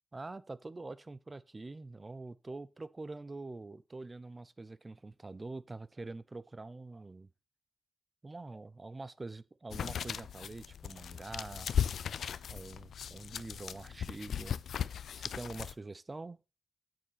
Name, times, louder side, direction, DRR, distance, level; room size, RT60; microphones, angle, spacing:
voice 1, 0.1-7.3 8.2-11.9 12.5-14.5 15.1-16.4, right 3 dB, 25° right, 0.7 m, -45 dB
sound 1, 9.7-15.7, left 8 dB, 80° left, 0.4 m, -37 dB
8.9 x 7.7 x 4.1 m
cardioid pair, 90°, 0 cm